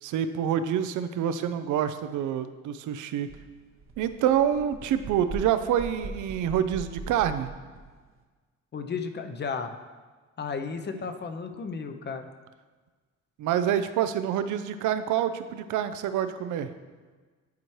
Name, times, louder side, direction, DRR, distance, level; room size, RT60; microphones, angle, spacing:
voice 1, 0.0-3.3 4.0-7.5 10.9-11.0 13.4-16.7, right 9 dB, 80° right, 11 dB, 0.5 m, -27 dB
sound 1, 3.3-3.4 3.7-7.9, right 3 dB, 45° right, 0.8 m, -40 dB
voice 2, 8.7-9.8 10.4-12.3, left 5 dB, 35° left, 7 dB, 0.6 m, -33 dB
10.5 x 4.4 x 3.1 m, 1.4 s
cardioid pair, 90°, 30 cm